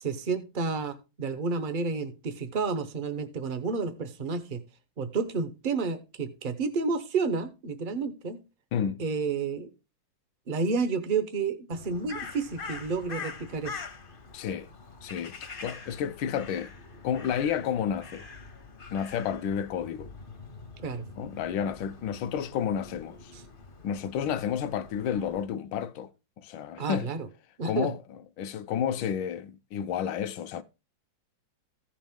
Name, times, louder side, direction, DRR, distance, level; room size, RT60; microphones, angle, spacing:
voice 1, 0.0-4.6 5.0-8.4 9.0-9.7 10.5-13.8 20.8-21.0 23.3-23.4 26.8-27.3 27.6-27.9, right 4 dB, 70° right, 0.4 m, -30 dB
voice 2, 8.7-9.0 14.3-14.7 15.0-16.7 17.0-18.3 18.9-20.1 21.2-23.3 23.8-26.1 26.4-27.1 27.6-28.0 28.4-30.6, left 8 dB, 75° left, 1.3 m, -31 dB
Crow, 11.7-25.4, left 4 dB, 45° left, 0.7 m, -44 dB
15.0 x 5.1 x 3.5 m
omnidirectional pair, 2.2 m